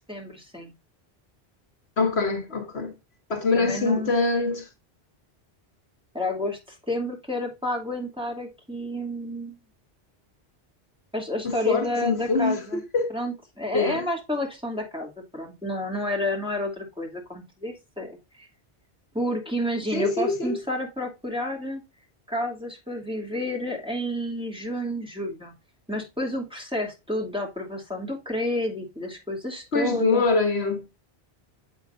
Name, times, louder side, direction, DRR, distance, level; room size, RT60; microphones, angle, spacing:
voice 1, 0.1-0.7 3.6-4.1 6.1-9.5 11.1-12.8 13.1-18.5 19.1-21.8 22.3-25.5 25.9-30.2, left 1 dB, 5° right, 2.7 m, -30 dB
voice 2, 2.0-2.9 3.3-4.7 11.4-13.1 13.7-14.0 19.9-20.6 29.7-30.8, left 3 dB, 70° left, 1.7 m, -24 dB
7.9 x 6.3 x 2.5 m
omnidirectional pair, 1.1 m